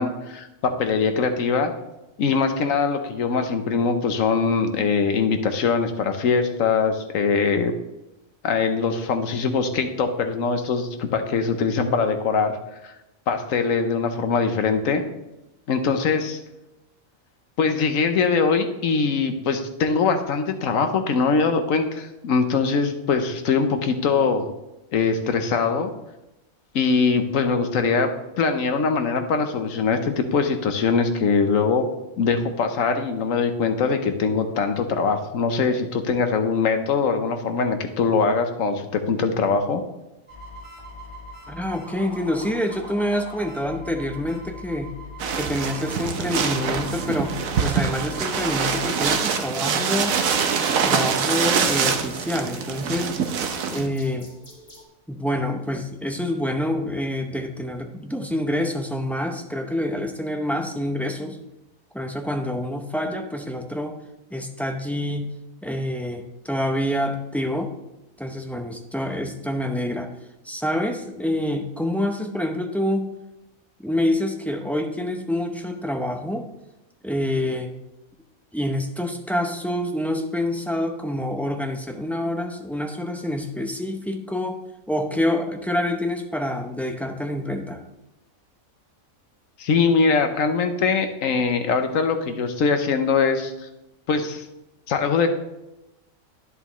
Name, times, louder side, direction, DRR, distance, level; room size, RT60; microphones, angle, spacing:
voice 1, 0.0-1.7 2.2-7.7 8.4-12.6 12.8-12.9 13.3-15.0 15.7-16.4 17.6-24.5 24.9-25.9 26.7-31.9 32.2-39.8 89.6-93.5 94.1-94.4 94.9-95.3, left 5 dB, 75° left, 7 dB, 1.3 m, -22 dB
sound 1, 40.3-54.8, left 1 dB, 20° left, 2.1 m, -42 dB
voice 2, 41.5-45.0 45.3-50.2 50.8-53.1 53.7-54.3 55.1-61.4 61.9-63.9 64.3-65.3 65.6-67.7 68.2-70.1 70.4-73.1 73.8-76.5 77.0-77.7 78.5-84.6 84.9-87.8, left 1 dB, ahead, 3 dB, 0.3 m, -27 dB
sound 2, 45.2-53.9, right 6 dB, 80° right, 1.2 m, -24 dB
10.5 x 7.4 x 3.1 m, 0.95 s
omnidirectional pair, 1.4 m